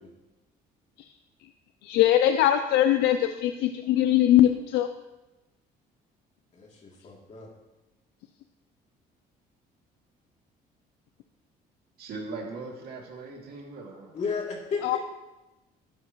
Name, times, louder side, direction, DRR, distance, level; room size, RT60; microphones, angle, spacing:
voice 1, 1.8-4.9 14.8-15.0, left 12 dB, 85° left, 8 dB, 0.5 m, -21 dB
voice 2, 6.5-7.5 14.1-15.0, left 5 dB, 45° left, -3 dB, 3.0 m, -33 dB
voice 3, 12.0-14.1, right 3 dB, 65° right, -1 dB, 2.6 m, -39 dB
12.5 x 9.0 x 3.2 m, 1.0 s
cardioid pair, 110°, 17 cm